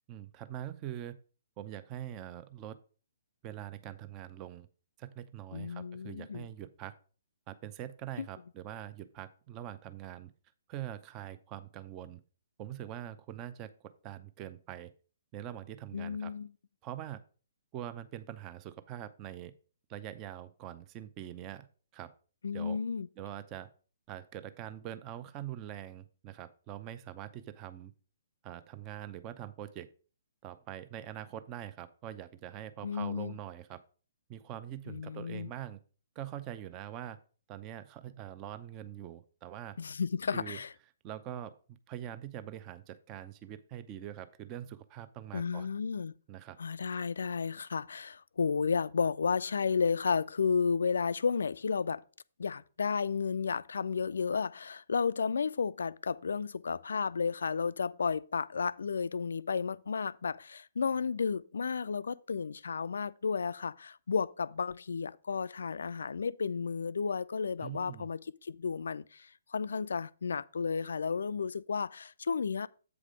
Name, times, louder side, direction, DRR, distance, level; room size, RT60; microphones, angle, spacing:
voice 1, 0.1-1.2 1.6-2.8 3.4-4.7 5.0-6.9 7.5-10.3 10.7-12.2 12.6-14.9 15.3-16.3 16.8-17.2 17.7-19.5 19.9-21.7 21.9-22.1 22.5-22.8 23.2-23.7 24.1-27.9 28.4-29.9 30.4-33.8 34.3-35.8 36.2-37.2 37.5-39.8 40.3-40.6 41.0-45.7 46.3-46.6 67.6-68.1, right 11 dB, 25° right, 0.6 m, -43 dB
voice 2, 5.5-6.5 8.2-8.3 15.9-16.5 22.4-23.1 32.8-33.4 34.9-35.5 39.8-40.7 45.3-46.1 46.6-52.0 52.4-72.7, left 5 dB, 65° left, 0.3 m, -32 dB
8.1 x 4.9 x 4.9 m
figure-of-eight pair, 125°, 0 cm